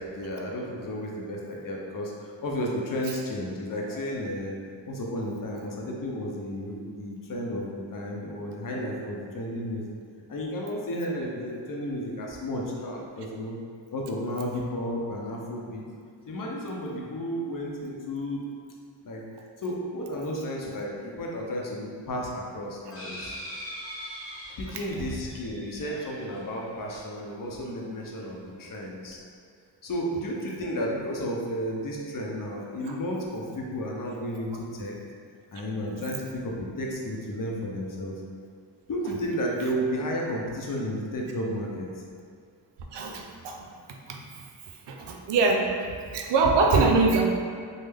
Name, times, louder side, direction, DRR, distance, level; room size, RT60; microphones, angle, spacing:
voice 1, 0.0-4.6 4.8-9.8 10.3-13.6 13.9-15.8 16.3-18.4 19.0-19.2 19.6-23.4 24.6-29.2 29.8-35.0 35.5-38.2 38.9-41.9, equal, 50° left, -2 dB, 0.7 m, -32 dB
sound 1, 22.9-27.5 28.2-28.3 28.5-28.6, equal, 30° left, 1.0 m, -42 dB
voice 2, 42.9-43.7 44.1-44.2 44.9-47.2, right 3 dB, 70° right, 2 dB, 0.5 m, -23 dB
3.4 x 2.1 x 3.4 m, 2.1 s
cardioid pair, 50°, 44 cm